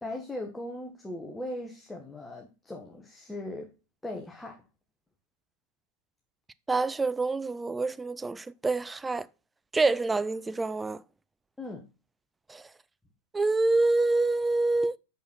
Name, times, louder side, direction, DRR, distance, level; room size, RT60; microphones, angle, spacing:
voice 1, 0.0-3.7 4.0-4.6 11.6-11.8, left 1 dB, 5° left, 1.3 m, -38 dB
voice 2, 6.7-9.3 9.7-11.0 12.5-12.6 13.3-15.0, right 3 dB, 10° right, 0.4 m, -26 dB
6.5 x 5.4 x 5.9 m
figure-of-eight pair, 90°, 0 cm